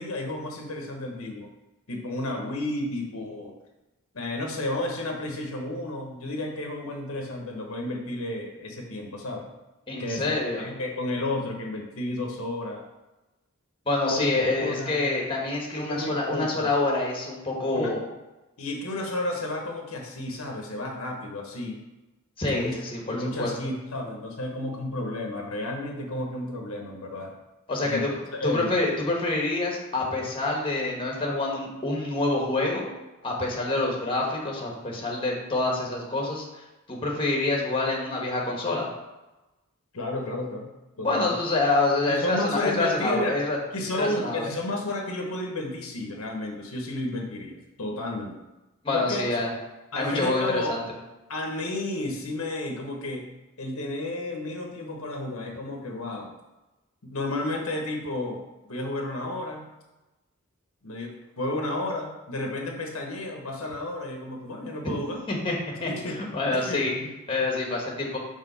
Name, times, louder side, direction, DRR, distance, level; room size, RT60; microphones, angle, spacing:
voice 1, 0.0-1.5 1.9-3.5 4.1-9.5 10.0-10.3 10.6-12.8 14.0-14.2 14.6-15.1 15.7-16.7 17.7-17.9 18.6-21.8 22.5-22.7 23.1-27.3 27.8-28.0 28.4-28.7 39.9-40.7 41.0-41.4 42.1-43.4 43.7-48.4 48.9-49.4 49.9-50.7 51.3-53.2 53.6-56.3 57.0-59.7 60.8-65.2 65.9-67.1, left 1 dB, 75° left, 1 dB, 1.0 m, -32 dB
voice 2, 9.9-10.6 13.8-18.0 22.4-23.5 27.7-28.1 28.4-32.9 33.2-38.9 41.0-43.6 43.9-44.5 48.8-49.5 49.9-50.8 65.3-65.5 65.8-66.9 67.3-68.2, left 2 dB, 25° left, -1 dB, 1.3 m, -27 dB
5.6 x 3.4 x 5.5 m, 1.0 s
head